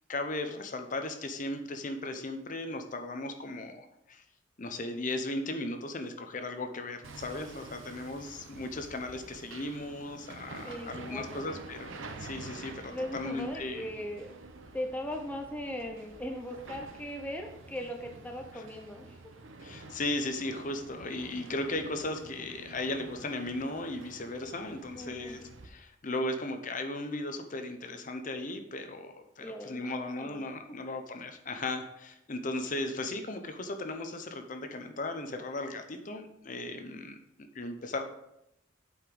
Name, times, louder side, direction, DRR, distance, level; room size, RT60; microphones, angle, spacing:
voice 1, 0.1-4.2 4.6-13.9 18.5-18.7 19.6-38.0, left 2 dB, 40° left, 6 dB, 0.8 m, -36 dB
Hammer, 7.0-25.7, right 3 dB, 85° right, 0.9 m, -48 dB
voice 2, 10.6-11.5 12.9-14.4 14.7-19.2 25.0-25.4 29.4-30.4 30.7-30.8, equal, 10° left, 2 dB, 0.7 m, -39 dB
8.2 x 4.9 x 5.3 m, 0.81 s
head